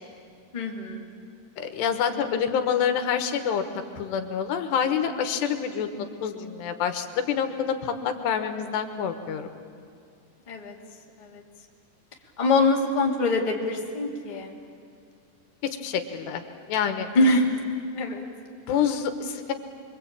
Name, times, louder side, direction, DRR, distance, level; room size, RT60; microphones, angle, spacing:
voice 1, 0.5-1.0 10.5-10.7 11.2-11.4 12.4-14.5 17.1-17.5 17.9-18.2, left 2 dB, 15° left, -1 dB, 1.6 m, -24 dB
voice 2, 1.6-3.6 4.0-9.5 15.6-16.4 16.7-17.1 18.7-19.5, left 7 dB, 80° left, 7 dB, 3.5 m, -27 dB
26.0 x 23.5 x 8.8 m, 2.3 s
omnidirectional pair, 4.9 m